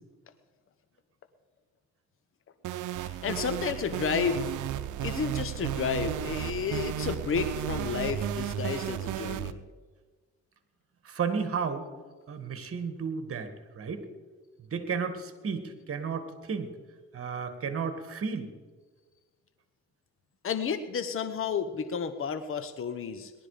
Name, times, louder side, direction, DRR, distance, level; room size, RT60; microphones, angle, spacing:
sound 1, 2.6-9.5, right 11 dB, 80° right, 0.7 m, -33 dB
voice 1, 3.0-4.5 5.0-9.6 20.4-23.3, left 6 dB, 45° left, 9 dB, 1.0 m, -31 dB
voice 2, 11.0-11.9 12.3-14.0 14.7-16.7 17.1-18.5, right 5 dB, 50° right, 9 dB, 2.0 m, -33 dB
18.5 x 12.0 x 5.0 m, 1.4 s
cardioid pair, 90°, 30 cm